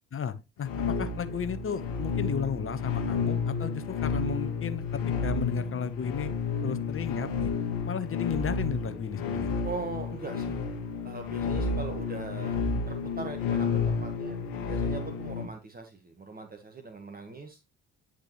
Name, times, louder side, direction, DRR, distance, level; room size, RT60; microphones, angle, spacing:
voice 1, 0.1-6.3 6.6-7.5 7.8-9.5, left 7 dB, 35° left, 1.2 m, -34 dB
sound 1, 0.6-15.5, left 5 dB, 70° left, 1.6 m, -31 dB
voice 2, 9.6-10.6 11.0-14.4 14.7-17.6, right 3 dB, 25° right, 1.5 m, -40 dB
10.0 x 5.1 x 3.1 m
hypercardioid pair, 50°, 35 cm